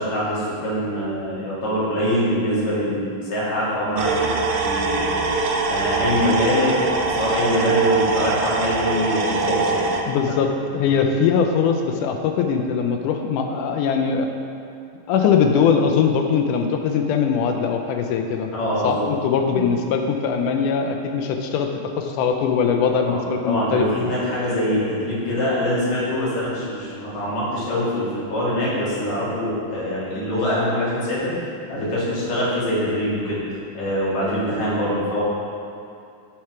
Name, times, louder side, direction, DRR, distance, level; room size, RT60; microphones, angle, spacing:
voice 1, 0.0-5.1 5.7-9.9 10.8-10.9 18.5-19.1 19.4-19.6 23.0-23.2 23.4-33.4 33.7-35.2, left 1 dB, 55° left, -8 dB, 3.2 m, -24 dB
sound 1, 4.0-10.0, right 3 dB, 85° right, 2.4 m, -22 dB
voice 2, 10.1-14.3 15.1-18.5 18.8-21.7 22.0-23.9, left 6 dB, 80° left, 4 dB, 1.9 m, -21 dB
7.4 x 5.9 x 4.7 m, 2.5 s
omnidirectional pair, 4.0 m